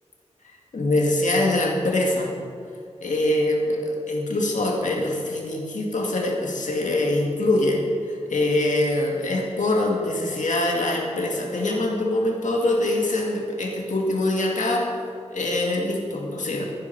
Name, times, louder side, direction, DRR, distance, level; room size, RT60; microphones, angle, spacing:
voice 1, 0.7-2.3 3.0-7.8 8.1-14.9 15.3-16.6, left 1 dB, 90° left, 0 dB, 2.0 m, -24 dB
16.0 x 9.9 x 4.6 m, 2.3 s
wide cardioid pair, 70°, 12 cm